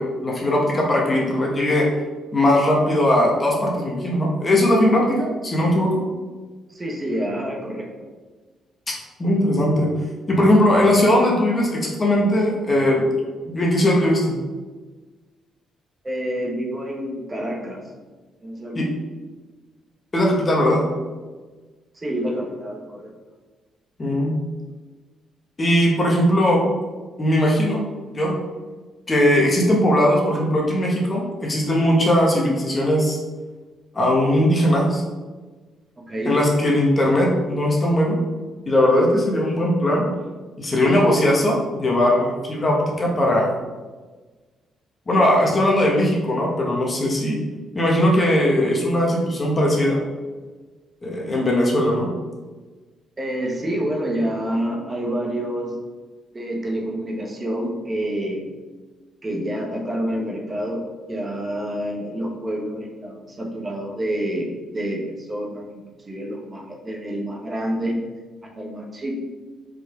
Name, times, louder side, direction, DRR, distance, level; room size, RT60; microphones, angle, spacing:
voice 1, 0.0-1.9 2.3-6.0 9.2-9.9 10.3-13.0 13.4-14.4 18.7-18.9 20.1-20.9 24.0-24.4 25.6-26.6 27.2-27.8 28.1-28.3 29.1-33.2 33.9-35.0 36.2-38.2 38.6-40.1 40.6-43.6 45.1-47.4 47.7-50.0 51.0-52.1, left 1 dB, 30° left, -2 dB, 1.6 m, -19 dB
voice 2, 6.7-8.1 16.0-17.8 18.4-18.8 21.9-23.1 36.0-36.4 53.2-55.8 56.3-58.4 59.2-68.0 68.4-69.1, right 1 dB, 25° right, -1 dB, 1.3 m, -28 dB
4.9 x 4.8 x 4.7 m, 1.3 s
cardioid pair, 90°, 0 cm